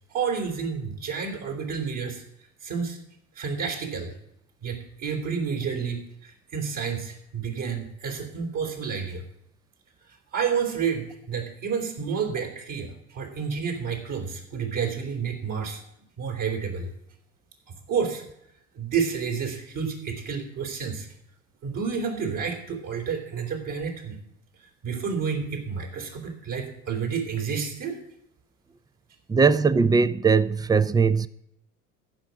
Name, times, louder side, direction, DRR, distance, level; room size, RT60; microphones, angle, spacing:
voice 1, 0.1-2.2 2.6-3.0 3.4-4.1 4.6-9.2 10.3-15.8 16.2-16.9 17.9-18.2 18.7-21.1 21.6-24.2 24.8-28.0, right 6 dB, 50° right, 3.7 m, -30 dB
voice 2, 29.3-31.3, right 5 dB, 10° right, 0.5 m, -20 dB
14.5 x 6.2 x 7.1 m
hypercardioid pair, 70°, 41 cm